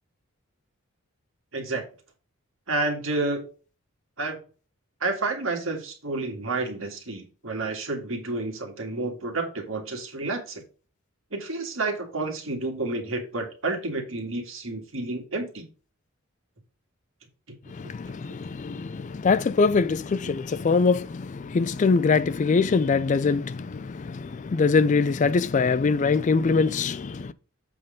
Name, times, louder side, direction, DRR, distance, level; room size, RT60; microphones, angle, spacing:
voice 1, 1.5-1.8 2.7-3.4 4.2-4.4 5.0-10.6 11.3-15.7, right 3 dB, 65° right, 2.0 m, -30 dB
voice 2, 17.8-27.3, left 4 dB, 35° left, 0.3 m, -23 dB
7.7 x 3.8 x 5.1 m
head